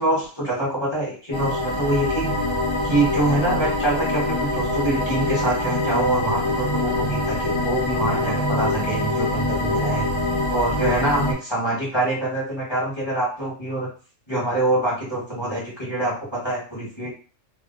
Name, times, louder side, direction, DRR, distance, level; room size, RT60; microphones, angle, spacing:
voice 1, 0.0-2.4 2.8-10.1 10.5-13.9 14.3-17.1, right 1 dB, 25° left, -6 dB, 1.1 m, -25 dB
sound 1, 1.3-11.3, left 1 dB, 40° left, 0.4 m, -24 dB
2.5 x 2.1 x 3.7 m, 0.38 s
omnidirectional pair, 1.3 m